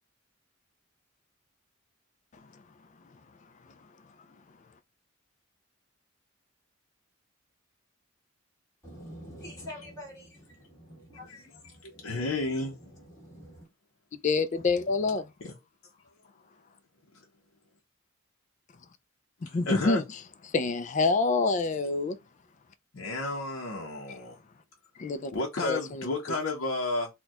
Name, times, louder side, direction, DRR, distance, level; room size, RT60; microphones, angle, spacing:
voice 1, 8.8-13.7 14.6-15.2, equal, 15° left, 1.5 m, -47 dB
voice 2, 11.8-12.9 15.4-15.5 17.1-17.2 19.4-20.0 22.9-24.4 25.3-27.1, left 2 dB, 65° left, 0.7 m, -32 dB
voice 3, 14.2-15.3 19.4-20.0 20.5-22.2 25.0-25.3 25.6-26.1, left 3 dB, 35° left, 0.3 m, -27 dB
4.2 x 2.2 x 2.3 m
head